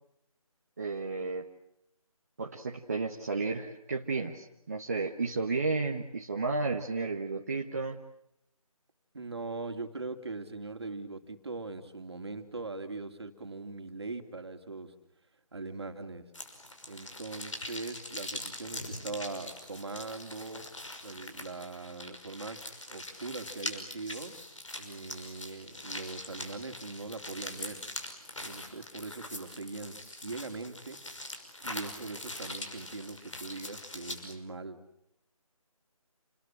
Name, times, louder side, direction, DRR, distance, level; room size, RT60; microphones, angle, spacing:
voice 1, 0.8-1.5 2.4-8.0, right 3 dB, 25° right, 1 dB, 1.2 m, -32 dB
voice 2, 9.1-14.9 15.5-16.3 16.9-20.7 21.0-24.4 24.8-27.8 28.4-31.0 31.6-34.8, right 3 dB, 45° right, 6 dB, 2.9 m, -41 dB
sound 1, 16.3-34.3, left 1 dB, 55° left, 5.7 m, -43 dB
28.5 x 21.0 x 8.8 m, 0.78 s
figure-of-eight pair, 160°, 19 cm